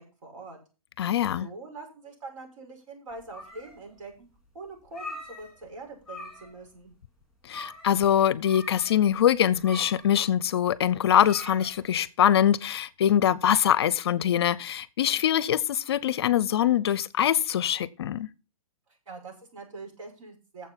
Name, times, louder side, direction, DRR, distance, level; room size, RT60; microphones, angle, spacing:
voice 1, 0.2-0.6 1.4-4.3 4.5-6.9 19.1-20.7, right 3 dB, 65° right, 6.2 m, -43 dB
voice 2, 1.0-1.5 7.5-18.3, left 10 dB, 45° left, 0.5 m, -23 dB
sound 1, 3.1-4.0 4.4-4.5 4.8-5.8 6.0-6.6 6.9-7.0 7.5-8.0 8.4-12.0, left 2 dB, 5° right, 3.2 m, -43 dB
10.0 x 7.4 x 5.8 m
hypercardioid pair, 170°, 18 cm